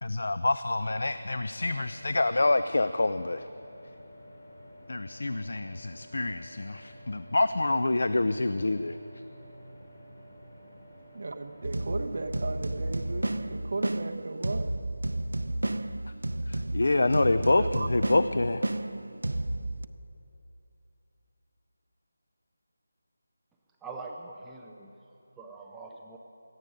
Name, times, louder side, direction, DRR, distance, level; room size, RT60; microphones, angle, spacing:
voice 1, 0.0-3.5 4.9-9.0 16.5-18.6, left 2 dB, 65° left, 12 dB, 0.5 m, -27 dB
sound 1, 0.7-13.4, equal, 35° left, 2.8 m, -50 dB
voice 2, 11.1-14.8 17.0-17.9, right 3 dB, 45° right, 4 dB, 1.0 m, -35 dB
sound 2, 11.6-19.9, right 1 dB, 90° right, 0.5 m, -32 dB
voice 3, 23.8-26.2, right 3 dB, 5° right, -1 dB, 0.5 m, -44 dB
17.0 x 14.0 x 5.2 m, 2.9 s
figure-of-eight pair, 175°, 0 cm